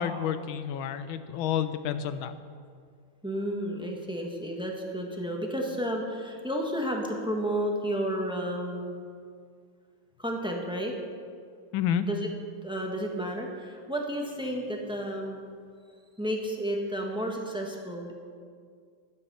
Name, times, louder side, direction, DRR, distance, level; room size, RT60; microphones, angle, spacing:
voice 1, 0.0-2.3 11.7-12.0, left 9 dB, 75° left, 11 dB, 1.5 m, -29 dB
voice 2, 3.2-9.0 10.2-10.9 12.0-12.3 12.6-15.4 16.2-18.1, equal, 5° right, 0 dB, 1.2 m, -32 dB
12.5 x 12.0 x 5.6 m, 2.1 s
omnidirectional pair, 2.3 m